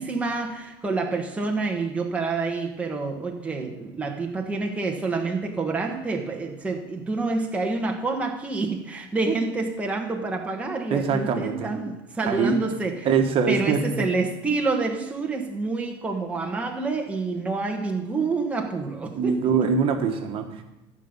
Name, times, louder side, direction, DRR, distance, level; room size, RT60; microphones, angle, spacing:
voice 1, 0.0-13.1 13.5-19.7, right 3 dB, 10° right, 1 dB, 1.2 m, -28 dB
voice 2, 10.9-11.7 12.3-12.6 13.0-14.0 19.2-20.6, right 6 dB, 45° right, 4 dB, 1.4 m, -23 dB
14.5 x 5.3 x 7.1 m, 0.95 s
supercardioid pair, 125°, 13 cm